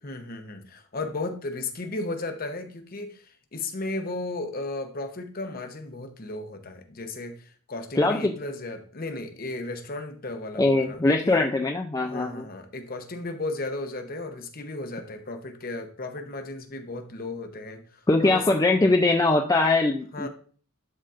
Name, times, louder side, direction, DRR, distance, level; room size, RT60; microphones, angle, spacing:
voice 1, 0.0-11.4 12.0-18.5 20.1-20.3, left 2 dB, 40° left, 6 dB, 0.8 m, -35 dB
voice 2, 8.0-8.3 10.6-12.5 18.1-20.3, left 2 dB, 15° left, 3 dB, 0.3 m, -22 dB
11.5 x 4.0 x 2.5 m, 0.43 s
head